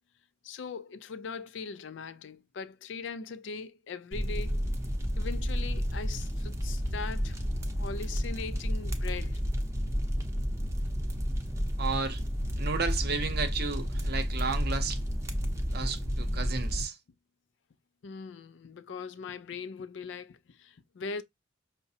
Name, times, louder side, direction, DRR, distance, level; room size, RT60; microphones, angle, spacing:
voice 1, 0.4-4.6 5.2-7.4 7.7-9.4 18.0-21.2, left 5 dB, 85° left, 0.4 m, -40 dB
sound 1, 4.1-16.8, equal, 15° right, 0.6 m, -31 dB
voice 2, 11.8-12.2 12.6-15.0 15.7-17.0, right 4 dB, 60° right, 0.7 m, -33 dB
5.7 x 2.0 x 2.7 m
head